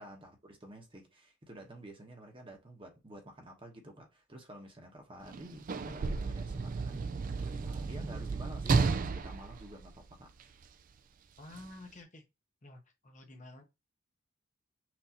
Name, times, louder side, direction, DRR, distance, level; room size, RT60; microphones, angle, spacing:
voice 1, 0.0-10.3, right 1 dB, 25° right, 1.0 m, -50 dB
Sliding door / Slam, 5.2-10.6 11.5-11.7, right 4 dB, 45° right, 0.3 m, -33 dB
voice 2, 11.4-12.2 12.6-13.6, left 2 dB, 40° left, 0.9 m, -50 dB
6.0 x 2.7 x 2.8 m
head